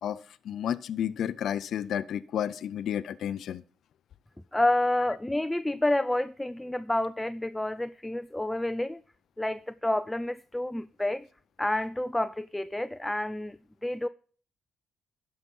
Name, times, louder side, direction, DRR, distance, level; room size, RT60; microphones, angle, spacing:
voice 1, 0.0-3.6, left 9 dB, 70° left, 0.4 m, -32 dB
voice 2, 4.5-9.0 9.4-11.3 11.6-14.1, left 1 dB, 10° left, 0.4 m, -29 dB
11.5 x 5.7 x 5.3 m
cardioid pair, 90°, 0 cm